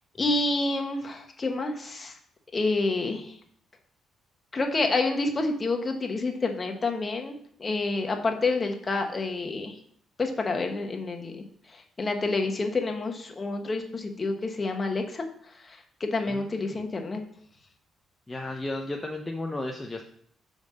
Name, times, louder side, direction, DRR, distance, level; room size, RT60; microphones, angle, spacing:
voice 1, 0.2-2.2 2.5-3.3 4.5-7.3 7.6-9.8 10.2-17.2, left 3 dB, 30° left, 3 dB, 1.3 m, -28 dB
voice 2, 16.3-16.8 18.3-20.0, left 2 dB, 15° left, 2 dB, 0.7 m, -34 dB
5.3 x 5.2 x 6.4 m, 0.64 s
cardioid pair, 90°, 0 cm